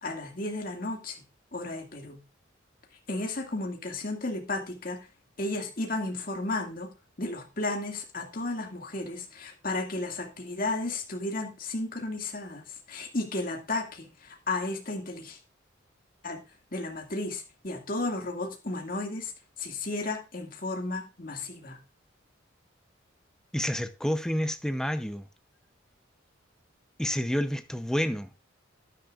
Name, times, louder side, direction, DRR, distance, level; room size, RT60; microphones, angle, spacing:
voice 1, 0.0-1.2 1.5-2.2 3.1-5.1 5.4-15.4 16.2-16.4 16.7-19.3 19.6-21.8, left 2 dB, 45° left, 2.2 m, -33 dB
voice 2, 23.5-25.3 27.0-28.4, equal, 5° left, 0.7 m, -29 dB
12.0 x 10.5 x 2.5 m
head